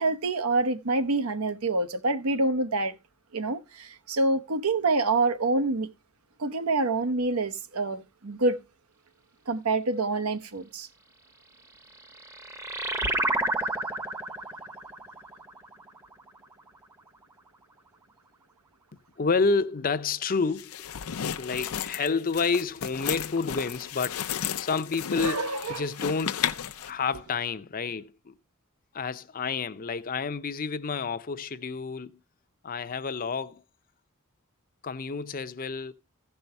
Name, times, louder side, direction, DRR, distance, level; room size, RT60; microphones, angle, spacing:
voice 1, 0.0-2.9 3.3-5.9 6.4-8.6 9.5-10.9 25.2-25.8, right 3 dB, 85° right, 0.9 m, -26 dB
sound 1, 11.8-16.8, right 2 dB, 15° right, 0.7 m, -31 dB
voice 2, 19.2-20.9 21.4-24.2 24.6-26.4 26.8-28.3 28.9-32.2 32.6-33.6 34.8-35.9, left 4 dB, 40° left, 0.6 m, -29 dB
sound 2, 20.5-26.9, left 9 dB, 90° left, 0.6 m, -33 dB
15.5 x 5.5 x 4.5 m
head